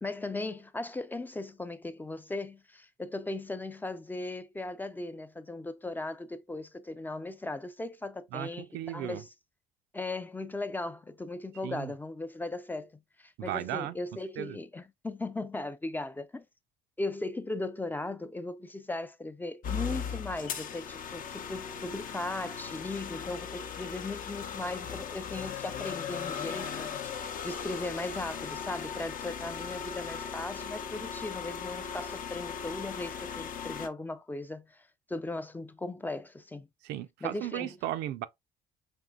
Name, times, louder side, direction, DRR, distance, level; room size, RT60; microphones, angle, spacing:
voice 1, 0.0-9.3 9.9-16.4 17.0-27.0 27.4-36.7 37.2-37.7, left 2 dB, 10° left, 0.3 m, -38 dB
voice 2, 8.3-9.2 11.6-11.9 13.4-14.0 14.4-14.6 36.8-38.3, right 13 dB, 85° right, 0.5 m, -36 dB
sound 1, 19.6-33.9, left 7 dB, 55° left, 0.6 m, -38 dB
5.2 x 3.2 x 2.3 m
cardioid pair, 110°, 17 cm